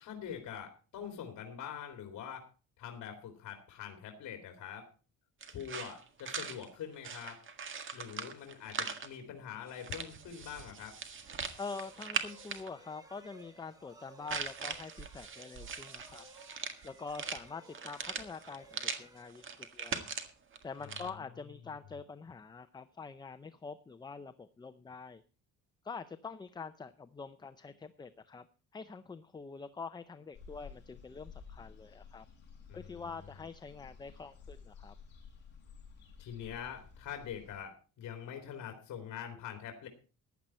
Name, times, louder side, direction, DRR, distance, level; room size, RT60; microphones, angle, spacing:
voice 1, 0.0-2.4 2.8-4.9 5.5-7.4 7.9-10.9 20.8-21.0 32.7-33.0 36.2-39.9, left 8 dB, 60° left, 4 dB, 2.9 m, -44 dB
sound 1, 5.4-9.1 9.7-12.7 14.3-19.0 19.3-21.1, right 6 dB, 40° right, 1.7 m, -41 dB
sound 2, 11.2-19.9, right 1 dB, 10° right, 1.5 m, -58 dB
voice 2, 11.6-16.2 16.8-20.0 20.6-25.2 25.8-28.5 28.7-32.3 32.7-34.9, left 4 dB, 15° left, 11 dB, 0.5 m, -45 dB
sound 3, 30.3-37.6, left 6 dB, 35° left, 6.2 m, -53 dB
15.0 x 10.5 x 4.2 m, 0.36 s
cardioid pair, 155°, 32 cm